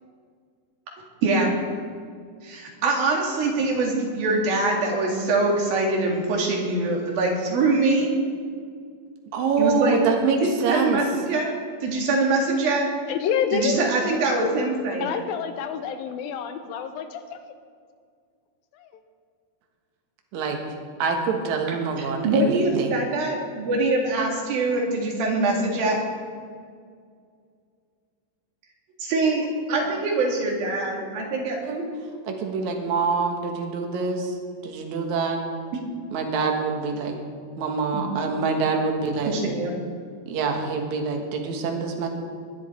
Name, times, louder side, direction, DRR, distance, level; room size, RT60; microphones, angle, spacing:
voice 1, 1.2-1.5 2.4-8.1 9.6-10.0 10.4-11.5 11.8-12.9 13.5-15.2 22.2-26.0 29.0-31.7 37.9-38.0 39.3-39.7, right 2 dB, 80° right, 0 dB, 4.1 m, -23 dB
voice 2, 9.3-11.0 20.3-20.6 21.0-23.0 31.6-31.9 32.2-34.4 34.6-35.4 36.1-37.2 37.6-39.3 40.3-42.1, right 4 dB, 60° right, 3 dB, 2.7 m, -25 dB
voice 3, 13.1-13.8 15.0-17.4 18.7-18.9, left 7 dB, 80° left, 8 dB, 2.8 m, -28 dB
20.5 x 11.0 x 4.5 m, 2.1 s
omnidirectional pair, 4.2 m